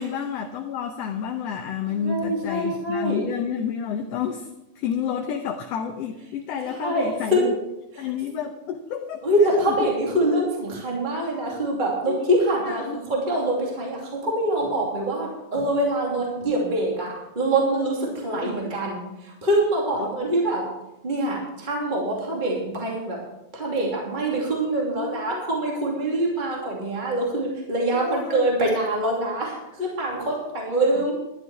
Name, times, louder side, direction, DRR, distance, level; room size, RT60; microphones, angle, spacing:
voice 1, 0.0-4.5 4.8-7.5 8.0-9.7 12.1-12.2 12.6-13.0 18.4-18.6 20.0-20.1 25.0-25.4 27.9-28.5, left 7 dB, 70° left, 4 dB, 1.8 m, -30 dB
voice 2, 1.9-3.4 6.7-7.5 7.9-8.1 9.2-20.7 21.0-23.2 23.5-31.1, right 1 dB, 15° right, -3 dB, 2.6 m, -25 dB
13.0 x 11.0 x 4.8 m, 0.93 s
omnidirectional pair, 3.3 m